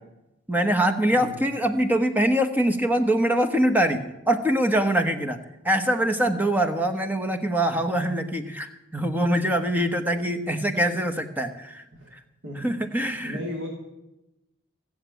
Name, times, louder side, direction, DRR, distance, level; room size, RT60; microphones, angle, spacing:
voice 1, 0.5-5.4 5.6-11.8 12.1-12.2 12.6-13.4, right 1 dB, 10° right, 7 dB, 1.1 m, -23 dB
voice 2, 1.1-1.4 9.2-9.3 10.1-10.2 11.9-12.1 12.4-13.7, left 1 dB, 90° right, -4 dB, 3.5 m, -37 dB
16.5 x 7.3 x 9.2 m, 0.94 s
head